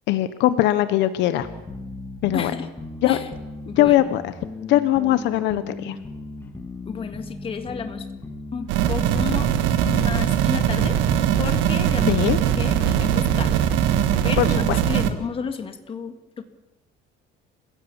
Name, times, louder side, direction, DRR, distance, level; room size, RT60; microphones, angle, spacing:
voice 1, 0.1-1.5 2.2-2.5 3.0-3.2 3.8-4.3 4.7-6.0 12.1-12.4 14.4-14.8, left 13 dB, 70° left, 12 dB, 1.0 m, -20 dB
sound 1, 1.4-13.7, left 2 dB, 10° left, 2.2 m, -37 dB
voice 2, 2.3-2.7 3.0-3.3 3.7-4.1 6.9-8.1 8.5-11.0 11.4-13.6 14.2-16.4, left 5 dB, 30° left, 7 dB, 1.9 m, -32 dB
sound 2, 8.7-15.1, right 10 dB, 80° right, 1.8 m, -21 dB
28.0 x 16.5 x 7.2 m, 1.0 s
cardioid pair, 155°, 19 cm